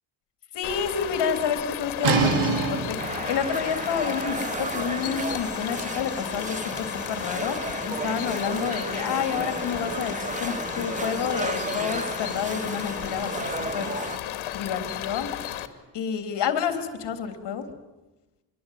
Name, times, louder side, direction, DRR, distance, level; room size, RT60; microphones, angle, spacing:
voice 1, 0.5-13.9 14.5-15.3 15.9-17.6, left 7 dB, 60° left, 9 dB, 3.4 m, -29 dB
sound 1, 0.6-15.7, left 11 dB, 85° left, 2.4 m, -34 dB
sound 2, 2.0-7.7, right 5 dB, 80° right, 3.9 m, -29 dB
sound 3, 3.0-14.2, right 3 dB, 15° right, 1.0 m, -34 dB
26.0 x 22.5 x 9.3 m, 1.1 s
cardioid pair, 180°, 47 cm